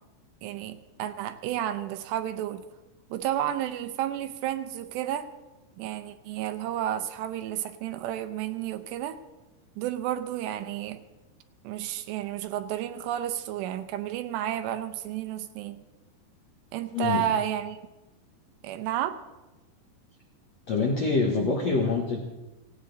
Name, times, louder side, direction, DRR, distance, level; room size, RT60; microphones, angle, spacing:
voice 1, 0.4-2.6 3.1-5.3 5.8-9.2 9.8-11.0 11.6-15.8 16.7-17.8 18.6-19.2, right 11 dB, 80° right, 10 dB, 2.9 m, -31 dB
voice 2, 16.9-17.3 20.7-22.2, left 4 dB, 70° left, 1 dB, 1.5 m, -25 dB
17.5 x 17.0 x 4.0 m, 1.1 s
omnidirectional pair, 5.0 m